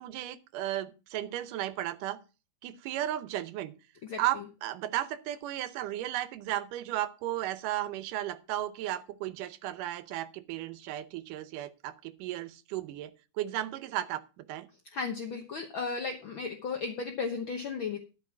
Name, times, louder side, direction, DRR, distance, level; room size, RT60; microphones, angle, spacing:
voice 1, 0.0-2.2 2.6-3.7 4.2-14.7, right 13 dB, 80° right, 13 dB, 2.3 m, -35 dB
voice 2, 14.9-18.0, left 5 dB, 65° left, 4 dB, 1.2 m, -35 dB
13.0 x 5.5 x 5.9 m, 0.32 s
omnidirectional pair, 3.9 m